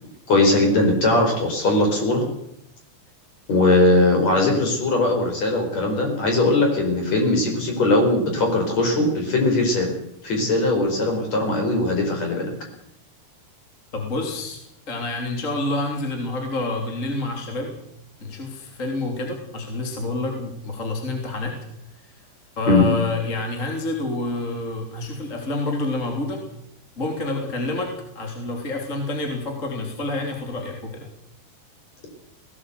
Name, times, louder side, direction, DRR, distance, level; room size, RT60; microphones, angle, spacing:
voice 1, 0.3-2.2 3.5-9.9 10.2-12.5 22.7-22.9, left 2 dB, 40° left, 2 dB, 5.7 m, -20 dB
voice 2, 13.9-14.6 14.9-17.7 18.2-21.6 22.1-22.2 22.6-26.4 27.0-31.1, left 2 dB, 20° left, 2 dB, 3.1 m, -28 dB
18.0 x 17.5 x 8.2 m, 0.78 s
omnidirectional pair, 4.9 m